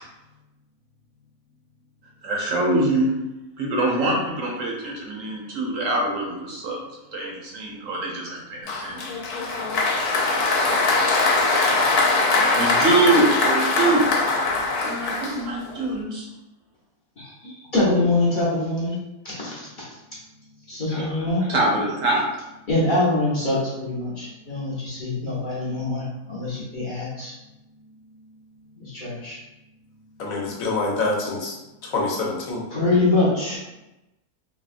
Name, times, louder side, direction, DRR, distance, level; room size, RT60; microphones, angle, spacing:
voice 1, 2.2-3.1 3.6-6.8 7.1-9.0 12.6-14.1 14.8-16.3 21.5-22.3, right 2 dB, 65° right, -2 dB, 1.0 m, -24 dB
Applause, 8.7-15.8, left 3 dB, 90° left, 1.1 m, -21 dB
voice 2, 17.2-19.0 19.2-19.9 20.7-21.5 22.7-27.3 28.8-29.4 32.7-33.6, left 2 dB, 45° left, -8 dB, 0.7 m, -24 dB
voice 3, 30.2-31.6 31.8-32.6, left 3 dB, 70° left, -2 dB, 1.0 m, -26 dB
3.5 x 2.1 x 2.4 m, 0.96 s
omnidirectional pair, 1.6 m